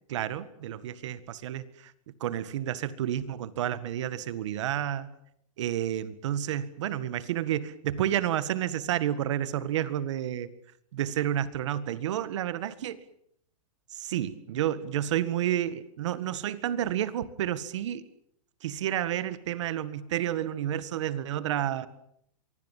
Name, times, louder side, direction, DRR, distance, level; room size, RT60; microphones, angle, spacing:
voice 1, 0.1-1.9 2.2-5.1 5.6-10.5 10.9-13.0 13.9-18.0 18.6-21.9, right 11 dB, 50° right, 14 dB, 1.8 m, -30 dB
24.5 x 24.5 x 7.5 m, 0.72 s
supercardioid pair, 175°, 19 cm